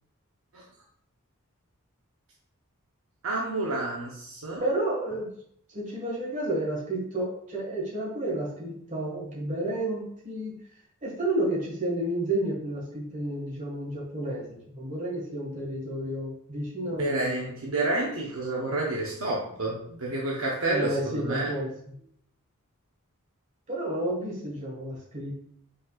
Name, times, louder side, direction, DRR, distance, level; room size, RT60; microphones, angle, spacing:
voice 1, 3.2-4.6 17.0-21.5, right 2 dB, 65° right, -3 dB, 0.7 m, -29 dB
voice 2, 4.6-5.3 5.7-10.6 11.0-17.5 20.7-21.7 23.7-25.4, right 1 dB, 35° right, -4 dB, 1.6 m, -31 dB
5.2 x 3.7 x 2.4 m, 0.67 s
head